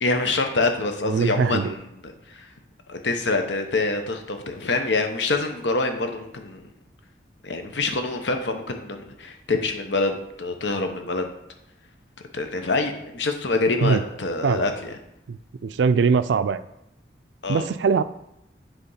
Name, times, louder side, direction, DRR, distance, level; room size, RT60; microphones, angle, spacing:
voice 1, 0.0-2.4 2.9-6.7 7.4-11.3 12.3-14.9 17.4-17.7, left 3 dB, 90° left, 5 dB, 0.9 m, -26 dB
voice 2, 1.1-1.7 13.8-14.0 14.4-14.7 15.3-15.4 15.6-16.6 17.5-18.0, right 5 dB, 90° right, 14 dB, 0.4 m, -21 dB
8.1 x 3.5 x 5.6 m, 0.82 s
head